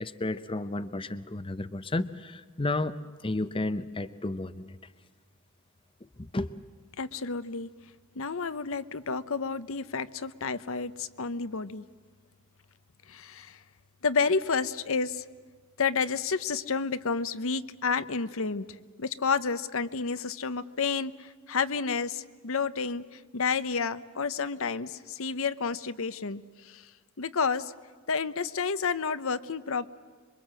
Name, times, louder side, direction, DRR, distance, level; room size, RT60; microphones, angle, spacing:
voice 1, 0.0-2.9 3.2-4.7 6.3-6.5, left 2 dB, 25° left, 12 dB, 0.7 m, -32 dB
voice 2, 7.0-7.7 8.1-11.8 13.1-13.6 14.0-15.2 15.8-18.7 19.0-26.9 27.2-27.7 28.1-29.9, left 5 dB, 65° left, 13 dB, 0.9 m, -30 dB
27.0 x 23.5 x 7.6 m, 1.5 s
head